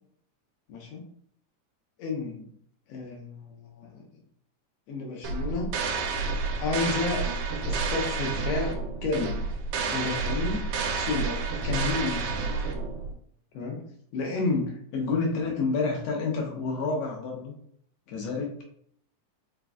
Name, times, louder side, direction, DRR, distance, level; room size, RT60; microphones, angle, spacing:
voice 1, 0.7-1.1 2.0-2.5 2.9-4.0 4.9-5.7 6.6-7.3 7.6-9.4 9.9-10.7 10.9-12.3 13.5-13.8 14.1-17.5 18.1-18.6, left 3 dB, 70° left, 0 dB, 1.6 m, -30 dB
sound 1, 5.2-13.1, right 4 dB, 90° right, 2.1 m, -30 dB
4.9 x 2.2 x 3.5 m, 0.64 s
omnidirectional pair, 3.5 m